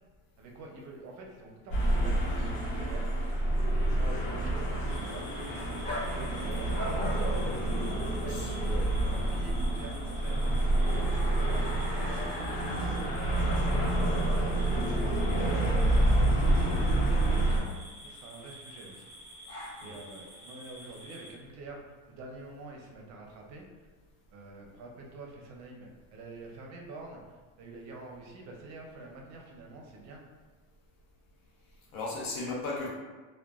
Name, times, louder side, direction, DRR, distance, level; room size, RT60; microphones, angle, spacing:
voice 1, 0.4-3.1 3.9-7.7 8.2-10.4 10.8-13.1 13.5-19.1 19.8-23.9 24.3-30.2, right 2 dB, 45° right, 0 dB, 0.5 m, -47 dB
sound 1, 1.7-17.6, right 1 dB, 90° left, 0.9 m, -28 dB
sound 2, 4.9-21.3, equal, 25° left, 1.3 m, -44 dB
voice 2, 8.2-9.5 19.8-20.0 31.9-32.9, left 3 dB, 60° left, -4 dB, 0.7 m, -38 dB
sound 3, 8.2-16.4, equal, ahead, 1.0 m, -46 dB
2.8 x 2.2 x 2.3 m, 1.4 s
cardioid pair, 140°, 38 cm